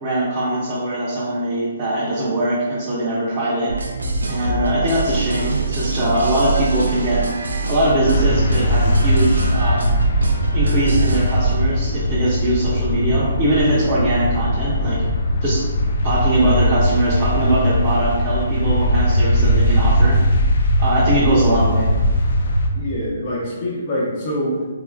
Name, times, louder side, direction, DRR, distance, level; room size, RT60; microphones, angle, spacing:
voice 1, 0.0-3.7 4.3-7.2 7.7-9.8 10.5-15.0 15.4-15.6 16.0-20.2 20.8-21.9, right 1 dB, 25° right, -9 dB, 0.7 m, -21 dB
sound 1, 3.7-11.5, right 4 dB, 90° right, 0.4 m, -23 dB
sound 2, 8.1-22.7, equal, 65° left, 0.4 m, -19 dB
voice 2, 22.7-24.6, equal, 40° left, -7 dB, 1.0 m, -25 dB
3.3 x 2.4 x 2.3 m, 1.3 s
hypercardioid pair, 145°, 0 cm